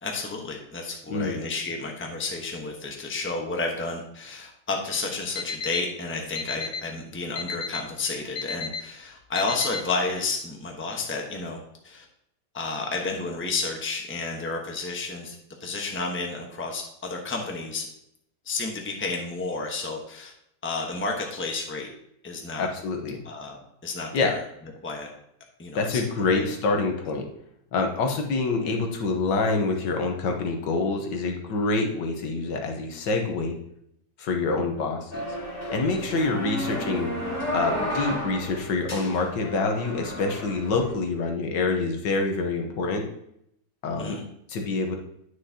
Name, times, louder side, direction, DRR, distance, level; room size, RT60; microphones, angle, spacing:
voice 1, 0.0-12.0 12.5-17.9 18.4-20.3 20.6-21.9 22.2-22.7 23.2-24.4 24.8-25.1 25.6-26.0 26.3-26.5 44.0-44.2, left 3 dB, 10° left, 1 dB, 0.8 m, -31 dB
Alarm, 5.4-5.8 6.4-6.8 7.4-7.8 8.4-8.8 9.4-9.8, left 6 dB, 65° left, 1.0 m, -31 dB
voice 2, 22.6-23.2 24.1-24.3 25.7-27.3 27.7-33.6 34.2-35.3 35.7-37.1 37.5-43.1 43.8-44.2 44.5-45.0, left 3 dB, 85° left, 3 dB, 1.7 m, -26 dB
sound 1, 35.1-40.9, equal, 30° left, 2.4 m, -32 dB
9.6 x 6.4 x 2.8 m, 0.75 s
omnidirectional pair, 1.9 m